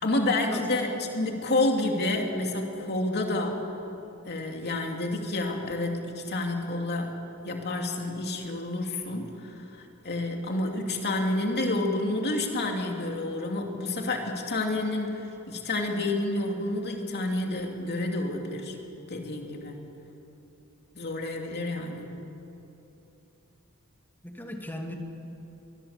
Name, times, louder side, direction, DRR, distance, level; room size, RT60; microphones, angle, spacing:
voice 1, 0.0-3.6 4.3-7.2 7.4-18.7 19.1-19.8 21.0-22.1, left 2 dB, 50° left, 2 dB, 2.8 m, -29 dB
voice 2, 24.2-25.0, left 1 dB, 10° left, 2 dB, 2.4 m, -38 dB
23.5 x 21.0 x 7.4 m, 2.9 s
head